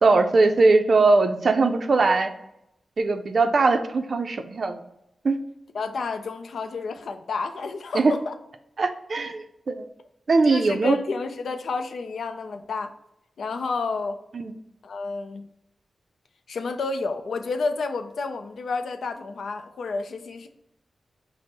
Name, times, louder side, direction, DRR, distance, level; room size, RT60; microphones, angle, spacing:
voice 1, 0.0-2.3 3.0-4.8 5.2-5.4 7.9-8.1 8.8-9.9 10.3-11.0 14.3-14.5, right 3 dB, 55° right, 8 dB, 0.4 m, -20 dB
voice 2, 5.7-8.3 10.5-12.9 13.4-14.2 14.8-15.5 16.5-20.5, left 4 dB, 85° left, 7 dB, 0.4 m, -30 dB
5.1 x 2.0 x 4.1 m, 0.82 s
wide cardioid pair, 130°, 0 cm